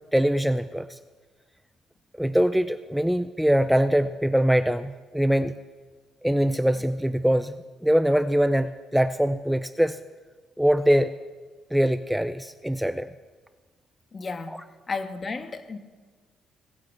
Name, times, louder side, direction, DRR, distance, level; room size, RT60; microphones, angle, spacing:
voice 1, 0.1-1.0 2.2-5.5 6.2-10.0 10.6-11.1 11.7-13.1, equal, 5° right, 12 dB, 0.5 m, -23 dB
voice 2, 14.1-14.6 14.9-15.8, left 4 dB, 35° left, 9 dB, 1.4 m, -33 dB
18.5 x 9.9 x 7.2 m, 1.4 s
cardioid pair, 90°, 0 cm